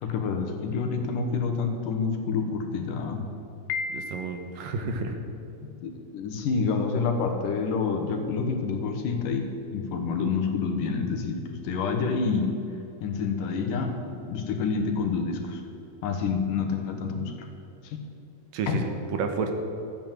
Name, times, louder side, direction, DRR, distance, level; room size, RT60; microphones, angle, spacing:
voice 1, 0.0-3.3 5.6-12.6 13.0-15.6 16.0-17.5 17.8-18.0 18.7-18.8, left 5 dB, 75° left, 5 dB, 2.7 m, -28 dB
Piano, 3.7-4.7, left 4 dB, 90° left, 2.4 m, -34 dB
voice 2, 3.9-5.2 18.5-19.5, right 5 dB, 75° right, 5 dB, 2.7 m, -30 dB
13.0 x 9.0 x 7.4 m, 2.9 s
omnidirectional pair, 3.9 m